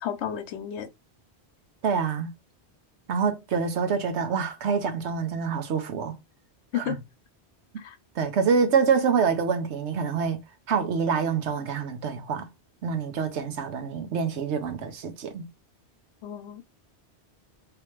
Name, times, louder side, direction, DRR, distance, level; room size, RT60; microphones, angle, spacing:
voice 1, 0.0-0.9 6.7-7.0 7.8-8.0 16.2-16.6, left 10 dB, 80° left, 0.9 m, -32 dB
voice 2, 1.8-2.3 3.1-6.2 6.7-7.0 8.1-10.4 10.7-12.5 12.8-15.5, right 6 dB, 85° right, 1.1 m, -26 dB
3.3 x 2.9 x 3.1 m
omnidirectional pair, 1.1 m